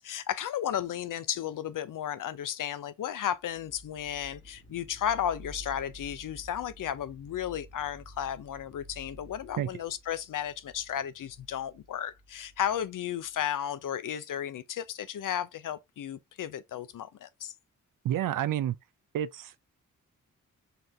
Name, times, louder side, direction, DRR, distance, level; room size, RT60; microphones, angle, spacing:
voice 1, 0.0-17.5, left 10 dB, 65° left, 0.6 m, -34 dB
sound 1, 3.5-13.3, right 1 dB, 40° left, 1.4 m, -51 dB
voice 2, 18.0-18.8 19.1-19.6, right 11 dB, 70° right, 0.5 m, -29 dB
4.1 x 2.6 x 3.1 m
supercardioid pair, 45°, 35 cm